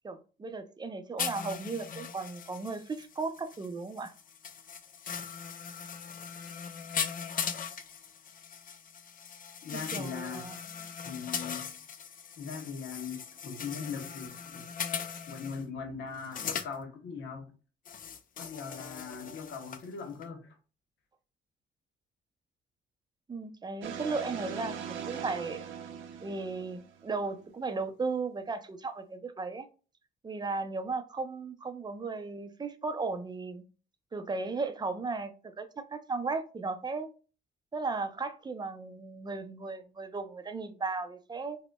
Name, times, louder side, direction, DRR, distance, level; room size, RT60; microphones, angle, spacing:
voice 1, 0.0-4.1 9.7-10.6 23.3-25.6 26.2-29.7 30.2-33.6 34.1-37.1 37.7-41.6, right 3 dB, 20° right, 0.5 m, -36 dB
sound 1, 1.2-15.6 16.2-16.7 17.9-19.9 20.2-20.3, left 7 dB, 45° left, 0.5 m, -39 dB
voice 2, 9.6-10.5 11.0-11.7 12.4-14.7 15.3-17.5 18.4-20.6, left 5 dB, 70° left, 0.9 m, -40 dB
sound 2, 23.8-27.2, right 8 dB, 75° right, 0.5 m, -40 dB
4.9 x 2.1 x 2.2 m
cardioid pair, 90°, 20 cm